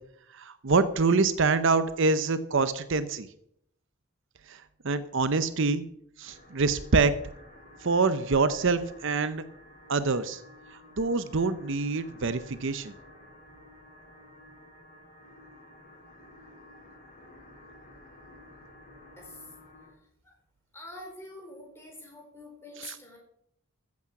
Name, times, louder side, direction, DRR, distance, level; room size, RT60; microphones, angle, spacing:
voice 1, 0.3-3.3 4.5-5.8 6.2-7.1 7.8-9.4 9.9-10.4 10.7-12.9 22.8-23.0, right 4 dB, 60° right, 13 dB, 0.7 m, -26 dB
sound 1, 6.2-19.9, left 1 dB, 40° left, 6.6 m, -52 dB
voice 2, 19.2-19.5 20.2-20.3 20.7-23.2, left 1 dB, 10° left, 1 dB, 4.2 m, -45 dB
14.5 x 8.5 x 5.9 m, 0.72 s
head